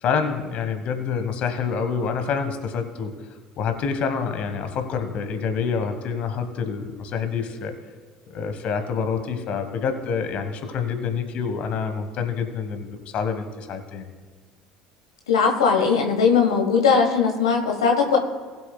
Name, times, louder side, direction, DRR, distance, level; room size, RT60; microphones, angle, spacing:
voice 1, 0.0-3.1 3.6-7.7 8.3-14.0, left 6 dB, 50° left, 7 dB, 1.4 m, -27 dB
voice 2, 15.3-18.2, left 5 dB, 75° left, 1 dB, 1.2 m, -19 dB
19.5 x 7.6 x 2.3 m, 1.5 s
figure-of-eight pair, 60°, 3 cm